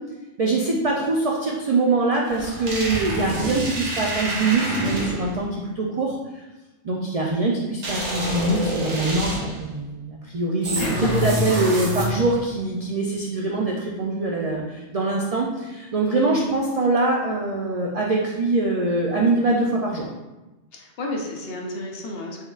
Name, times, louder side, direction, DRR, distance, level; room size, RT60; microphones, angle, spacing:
voice 1, 0.4-6.2 6.8-20.1, right 2 dB, 65° right, -2 dB, 0.3 m, -23 dB
sound 1, 2.3-5.4 7.8-9.6 10.6-12.4, equal, 85° right, 1.2 m, -27 dB
voice 2, 10.8-11.6 20.7-22.4, left 1 dB, 65° left, 0 dB, 0.9 m, -31 dB
4.3 x 3.5 x 2.3 m, 1.1 s
omnidirectional pair, 1.2 m